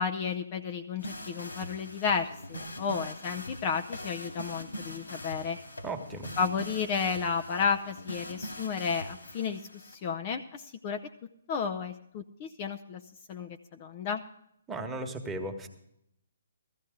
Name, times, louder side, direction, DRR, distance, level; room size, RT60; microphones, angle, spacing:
voice 1, 0.0-5.6 6.4-11.0 11.5-13.0 13.3-14.2, left 6 dB, 30° left, 6 dB, 0.6 m, -32 dB
sound 1, 1.0-9.9, equal, 75° left, 2.7 m, -42 dB
voice 2, 5.8-6.3 14.7-15.7, right 2 dB, 10° right, 2 dB, 1.4 m, -36 dB
15.5 x 14.0 x 3.7 m, 0.76 s
figure-of-eight pair, 135°, 0 cm